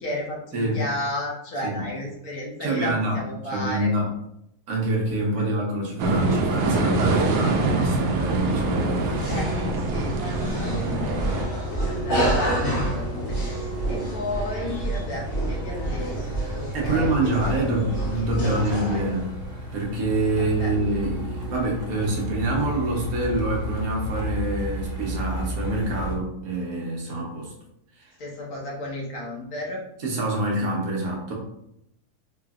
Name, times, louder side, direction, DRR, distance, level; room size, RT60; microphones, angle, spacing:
voice 1, 0.0-3.9 5.4-5.5 9.3-16.1 16.5-17.3 17.7-19.0 20.4-20.7 28.2-29.8, left 1 dB, 70° left, -3 dB, 1.5 m, -34 dB
voice 2, 0.5-0.8 1.6-1.8 2.6-3.2 3.5-4.1 4.7-9.4 16.7-19.3 19.7-27.5 28.0-28.1 30.0-31.3, right 2 dB, 70° right, -2 dB, 1.3 m, -26 dB
sound 1, 6.0-11.5, right 2 dB, 90° right, 1.1 m, -24 dB
Truck, 7.5-26.2, equal, 45° right, 1.0 m, -34 dB
sound 2, 8.8-19.2, right 1 dB, 45° left, 1.4 m, -29 dB
4.2 x 3.1 x 2.3 m, 0.80 s
omnidirectional pair, 1.6 m